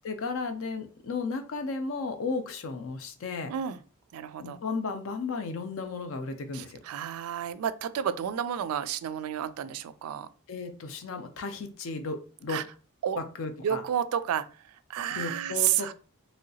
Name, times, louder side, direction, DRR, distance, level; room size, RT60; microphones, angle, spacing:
voice 1, 0.0-3.5 4.4-6.8 10.5-12.6 13.2-13.8 15.1-15.9, left 4 dB, 65° left, 0.5 m, -34 dB
voice 2, 3.5-3.8 4.1-4.6 6.5-10.3 12.5-12.6 13.0-13.2 13.6-15.9, right 9 dB, 75° right, 0.3 m, -31 dB
3.1 x 2.7 x 2.7 m
head